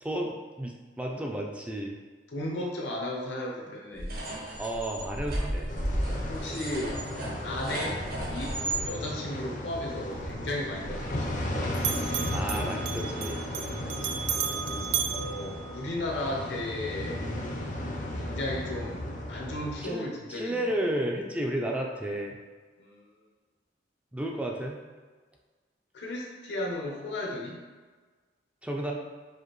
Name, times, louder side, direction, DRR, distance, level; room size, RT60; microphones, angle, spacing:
voice 1, 0.0-2.0 4.6-5.7 7.7-7.9 12.3-13.4 16.2-16.3 19.8-22.4 24.1-24.8 28.6-28.9, right 1 dB, 10° right, 0 dB, 0.3 m, -32 dB
voice 2, 2.3-4.2 6.3-7.0 7.4-11.6 15.1-17.2 18.2-20.7 22.8-23.0 25.9-27.6, left 1 dB, 75° left, -1 dB, 0.8 m, -35 dB
sound 1, 3.9-8.8, right 1 dB, 60° right, 0.8 m, -33 dB
sound 2, 5.7-19.8, left 1 dB, 45° left, 0.5 m, -35 dB
Bell, 10.1-11.5 11.7-16.2, right 8 dB, 85° right, 0.3 m, -34 dB
4.8 x 2.6 x 3.0 m, 1.4 s
head